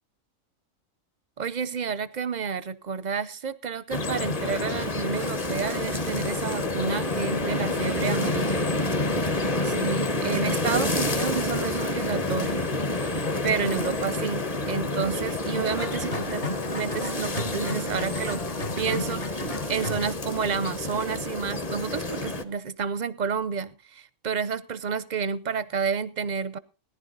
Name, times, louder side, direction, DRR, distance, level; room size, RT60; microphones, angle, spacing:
voice 1, 1.4-8.6 9.6-12.7 13.4-16.4 16.7-18.4 18.8-26.6, right 6 dB, 40° right, 17 dB, 0.7 m, -30 dB
sound 1, 3.9-22.4, left 2 dB, 30° left, 1.2 m, -28 dB
sound 2, 15.5-20.1, left 1 dB, 45° left, 2.0 m, -34 dB
18.5 x 11.0 x 4.0 m, 0.32 s
omnidirectional pair, 1.4 m